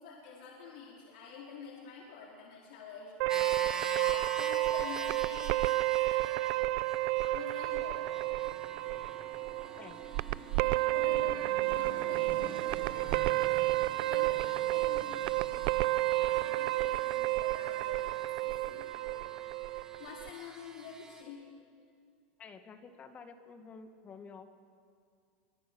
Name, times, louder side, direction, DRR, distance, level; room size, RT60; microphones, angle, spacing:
voice 1, 0.0-3.7 4.0-5.9 7.2-8.1 8.5-8.6 10.5-13.7 14.0-15.8 16.2-18.1 18.4-19.2 20.0-21.5, left 5 dB, 70° left, -3 dB, 4.5 m, -48 dB
sound 1, 3.2-20.3, right 20 dB, 60° right, 0.5 m, -31 dB
sound 2, 3.3-21.2, right 3 dB, 10° right, 1.7 m, -46 dB
sound 3, 6.2-20.4, right 4 dB, 40° right, 4.1 m, -52 dB
voice 2, 22.4-24.5, left 5 dB, 25° left, 8 dB, 1.9 m, -50 dB
27.5 x 24.0 x 6.3 m, 2.3 s
supercardioid pair, 125°, 5 cm